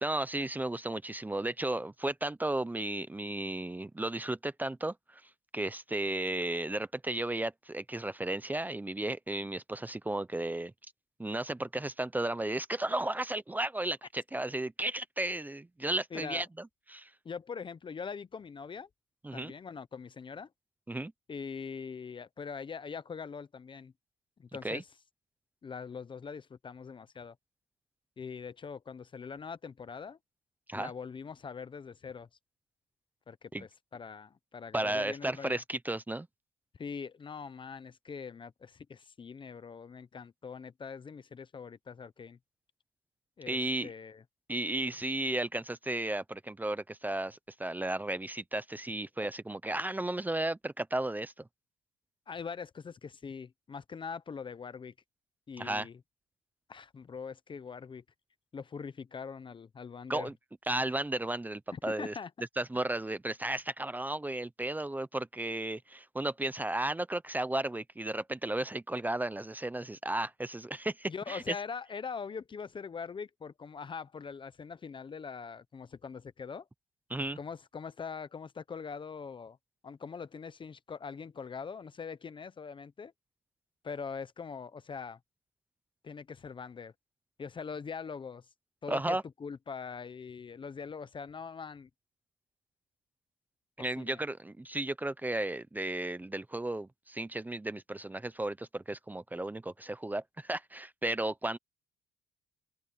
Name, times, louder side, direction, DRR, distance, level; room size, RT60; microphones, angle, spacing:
voice 1, 0.0-5.2 5.5-10.7 11.2-16.5 16.9-17.1 19.2-19.5 20.9-21.1 24.6-24.8 30.7-30.9 33.5-33.6 34.7-36.3 43.5-43.9 44.5-51.3 55.6-55.9 60.1-60.3 60.7-62.1 62.6-71.5 77.1-77.4 88.9-89.2 93.8-101.6, right 1 dB, 10° right, 0.8 m, -34 dB
voice 2, 16.1-16.4 17.2-18.9 19.3-20.5 21.3-23.9 24.4-24.9 25.6-27.4 28.2-30.2 30.7-32.3 33.3-35.6 36.7-42.4 43.4-44.2 52.3-54.9 55.5-56.0 56.7-58.0 58.5-60.3 61.7-62.3 71.1-76.7 77.4-79.6 79.8-83.1 83.8-85.2 86.0-86.9 87.4-88.5 88.8-91.9 94.0-94.2, left 5 dB, 30° left, 0.8 m, -42 dB
cardioid pair, 110°, 17 cm